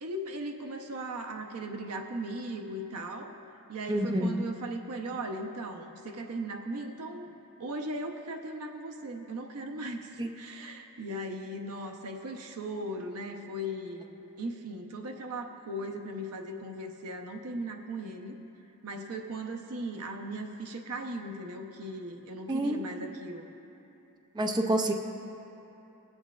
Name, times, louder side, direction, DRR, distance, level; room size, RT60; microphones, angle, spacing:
voice 1, 0.0-3.4 3.7-7.3 7.6-18.4 18.8-23.5, right 1 dB, 80° right, 3 dB, 0.8 m, -38 dB
voice 2, 3.9-4.5 10.2-10.3 22.5-22.8 24.3-24.9, right 1 dB, 20° right, 4 dB, 0.4 m, -28 dB
20.5 x 8.0 x 2.4 m, 3.0 s
head